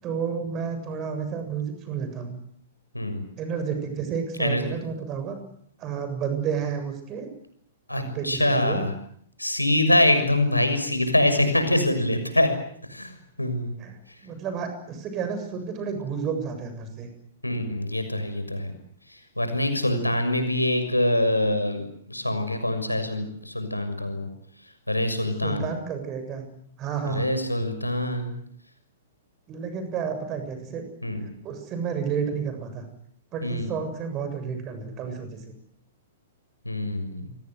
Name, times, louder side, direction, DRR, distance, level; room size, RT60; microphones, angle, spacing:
voice 1, 0.0-2.4 3.4-5.4 5.8-7.3 7.9-8.8 13.8-13.9 14.2-17.1 25.4-26.5 26.8-27.3 29.5-30.8 31.4-32.8 33.3-35.5, right 6 dB, 30° right, 8 dB, 7.5 m, -31 dB
voice 2, 2.9-3.3 4.4-4.7 7.9-8.9 9.4-12.6 12.9-13.7 14.1-14.2 17.4-18.7 19.1-24.3 24.6-25.7 27.0-28.4 31.0-31.3 33.4-33.7 36.6-37.3, left 1 dB, 85° left, 8 dB, 6.5 m, -25 dB
29.0 x 23.0 x 8.0 m, 0.65 s
figure-of-eight pair, 110°, 0 cm